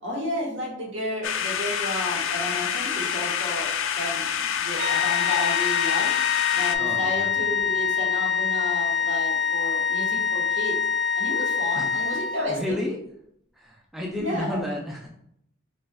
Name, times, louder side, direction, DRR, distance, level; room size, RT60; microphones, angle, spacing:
voice 1, 0.0-6.1 6.5-10.8 11.2-12.8 14.1-14.6, left 1 dB, 70° right, -3 dB, 1.4 m, -32 dB
sound 1, 1.2-6.8, left 8 dB, 80° left, 0.3 m, -27 dB
sound 2, 4.8-12.6, left 7 dB, 25° right, 0.9 m, -25 dB
voice 2, 6.8-7.3 11.8-12.0 12.5-13.0 13.5-15.1, left 1 dB, ahead, -2 dB, 0.3 m, -32 dB
4.2 x 3.2 x 2.3 m, 0.71 s
head